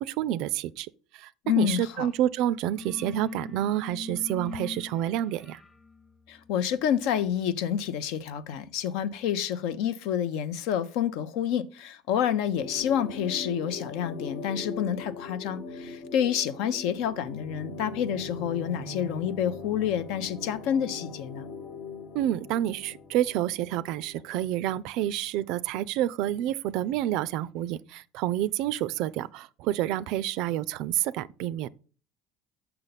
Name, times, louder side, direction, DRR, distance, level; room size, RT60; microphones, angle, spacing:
voice 1, 0.0-1.3 1.6-5.6 22.1-31.7, right 12 dB, 70° right, 0.3 m, -29 dB
voice 2, 1.4-2.1 6.3-21.5, left 9 dB, 75° left, 0.6 m, -28 dB
sound 1, 2.0-2.2 2.5-9.1, left 5 dB, 10° left, 0.7 m, -45 dB
sound 2, 12.6-24.5, left 3 dB, 55° left, 1.2 m, -41 dB
6.6 x 5.6 x 4.0 m
supercardioid pair, 95°, 0 cm